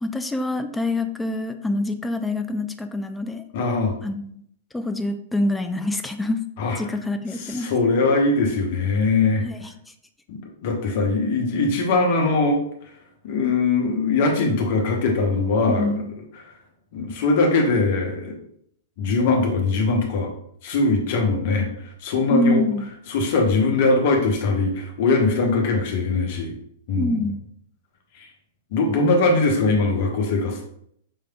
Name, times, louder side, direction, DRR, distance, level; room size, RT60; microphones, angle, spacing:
voice 1, 0.0-3.4 4.0-4.5 4.7-6.4 6.8-7.7 9.4-9.7 15.7-16.1 22.3-22.9 27.0-27.4, left 1 dB, 5° left, 7 dB, 0.3 m, -25 dB
voice 2, 3.5-3.9 6.6-6.8 7.4-9.4 10.3-12.6 13.2-15.9 16.9-18.4 19.0-20.3 20.6-21.7 22.0-22.6 23.1-26.6 26.9-27.2 28.7-30.7, left 3 dB, 50° left, 2 dB, 0.9 m, -21 dB
5.4 x 3.3 x 2.3 m, 0.69 s
figure-of-eight pair, 100°, 0 cm